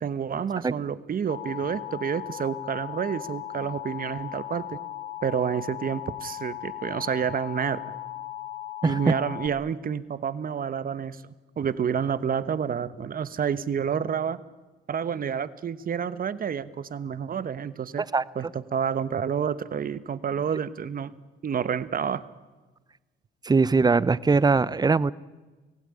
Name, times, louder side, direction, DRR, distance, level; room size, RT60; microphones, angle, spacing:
voice 1, 0.0-4.8 5.2-7.8 8.8-11.2 11.6-14.4 14.9-18.1 18.3-21.1 21.4-22.2, right 7 dB, 45° right, 15 dB, 1.2 m, -29 dB
Alarm, 1.3-9.5, left 12 dB, 90° left, 1.9 m, -37 dB
voice 2, 8.8-9.1 18.1-18.2 23.4-25.1, right 4 dB, 20° right, 19 dB, 0.7 m, -21 dB
25.0 x 16.5 x 9.8 m, 1.2 s
cardioid pair, 90°, 20 cm